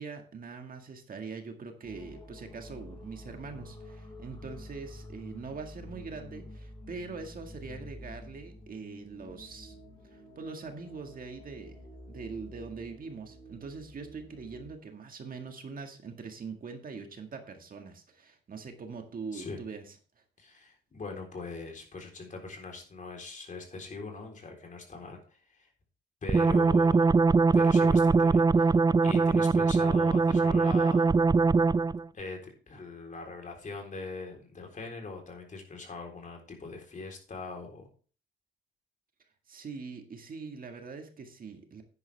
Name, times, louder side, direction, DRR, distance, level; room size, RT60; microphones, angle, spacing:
voice 1, 0.0-9.8 10.1-11.8 12.1-19.8 39.5-41.8, right 4 dB, 45° right, 5 dB, 1.9 m, -42 dB
sound 1, 1.8-14.7, left 1 dB, 25° left, 5.7 m, -48 dB
voice 2, 20.4-25.7 26.2-27.1 27.5-31.1 32.1-37.9, left 3 dB, 40° left, 1 dB, 3.9 m, -41 dB
sound 2, 26.3-32.0, right 4 dB, 20° right, 0.4 m, -22 dB
10.0 x 10.0 x 3.5 m, 0.39 s
cardioid pair, 90°, 20 cm